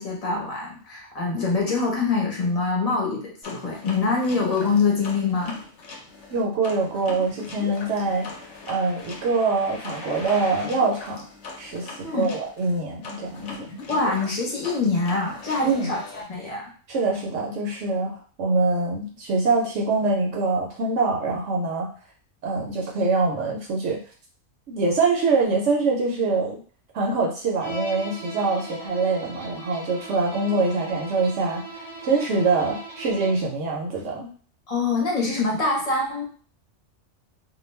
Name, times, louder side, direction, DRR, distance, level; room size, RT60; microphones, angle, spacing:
voice 1, 0.0-5.6 12.0-12.3 13.9-16.6 34.7-36.2, left 4 dB, 35° left, -2 dB, 0.8 m, -24 dB
sound 1, 3.4-16.2, left 3 dB, 75° left, 0.9 m, -40 dB
voice 2, 6.3-8.3 8.7-11.2 11.6-13.7 15.6-15.9 16.9-21.9 22.4-24.0 24.7-26.6 26.9-34.3, right 3 dB, 75° right, 0 dB, 0.9 m, -24 dB
Bowed string instrument, 27.6-33.5, right 1 dB, 40° right, 0.5 m, -38 dB
2.3 x 2.2 x 3.1 m, 0.41 s
omnidirectional pair, 1.3 m